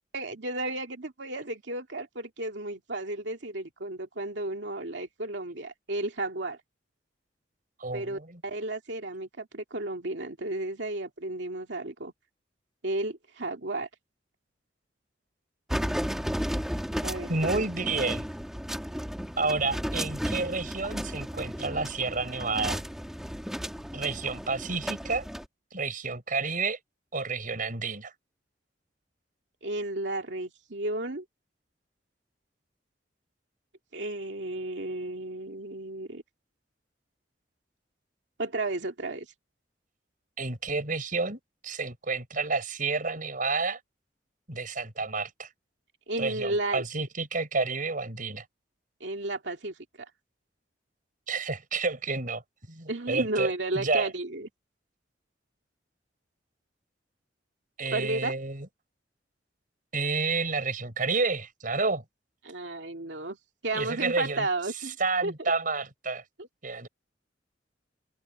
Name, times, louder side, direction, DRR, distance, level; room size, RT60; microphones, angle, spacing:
voice 1, 0.1-6.6 7.9-12.1 12.8-13.9 17.0-17.6 29.6-31.2 33.9-36.2 38.4-39.3 46.1-46.8 49.0-50.1 52.9-54.5 57.9-58.3 62.4-63.4 63.6-65.0 65.2-65.5 66.4-66.5, right 2 dB, 75° right, 2.4 m, -33 dB
voice 2, 7.8-8.4 17.3-18.2 19.4-22.8 23.9-25.3 25.7-26.8 27.1-28.1 40.4-43.8 44.5-45.5 46.2-48.4 51.3-52.4 52.7-54.1 57.8-58.7 59.9-62.0 63.7-64.5 65.0-66.2 66.6-66.9, right 4 dB, 50° right, 6.2 m, -30 dB
sound 1, 15.7-25.4, equal, 5° right, 2.5 m, -34 dB
head